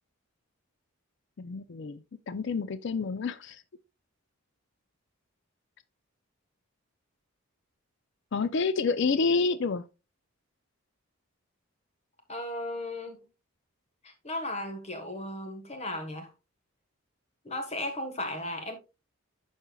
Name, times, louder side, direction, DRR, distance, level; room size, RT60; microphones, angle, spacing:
voice 1, 1.4-2.0 2.3-3.6 8.3-9.8, left 4 dB, 55° left, 0.4 m, -28 dB
voice 2, 12.3-13.2 14.0-16.3 17.4-18.7, left 1 dB, 30° left, 1.3 m, -35 dB
12.0 x 4.3 x 2.3 m
head